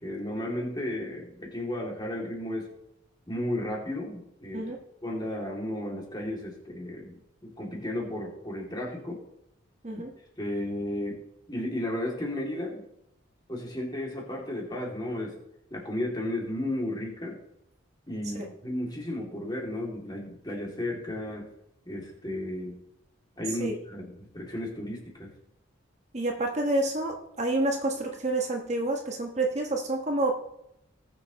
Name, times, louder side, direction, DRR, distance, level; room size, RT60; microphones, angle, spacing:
voice 1, 0.0-2.7 3.3-4.6 5.0-9.2 10.4-12.8 13.5-15.4 15.7-17.4 18.1-21.5 21.9-22.8 23.4-25.3, left 1 dB, 20° left, -2 dB, 2.6 m, -34 dB
voice 2, 26.1-30.4, right 2 dB, 35° right, 2 dB, 1.2 m, -28 dB
19.5 x 6.9 x 3.1 m, 0.81 s
head